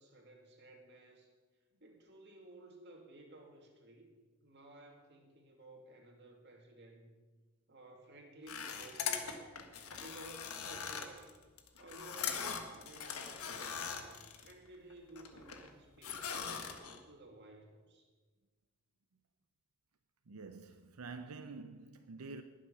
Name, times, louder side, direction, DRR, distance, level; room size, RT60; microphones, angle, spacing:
voice 1, 0.0-1.3 1.8-4.1 4.4-7.1 7.7-9.3 10.0-11.3 11.8-16.7 17.1-18.1, right 2 dB, 50° right, 2.2 m, -55 dB
sound 1, 8.5-14.5 14.9-15.7 16.0-17.0, left 7 dB, 85° left, 1.4 m, -41 dB
voice 2, 20.3-22.4, right 3 dB, 90° right, 0.7 m, -48 dB
20.0 x 7.6 x 5.6 m
head